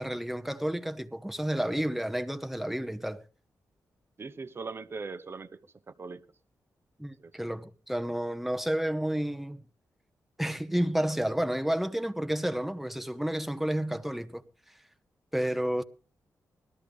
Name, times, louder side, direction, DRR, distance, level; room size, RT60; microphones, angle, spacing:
voice 1, 0.0-3.2 7.0-9.6 10.4-14.4 14.7-14.8 15.3-15.8, right 1 dB, 5° right, 0.9 m, -31 dB
voice 2, 4.2-6.2 7.2-7.4, right 4 dB, 35° right, 0.9 m, -40 dB
21.0 x 13.5 x 3.5 m
wide cardioid pair, 110°, 7 cm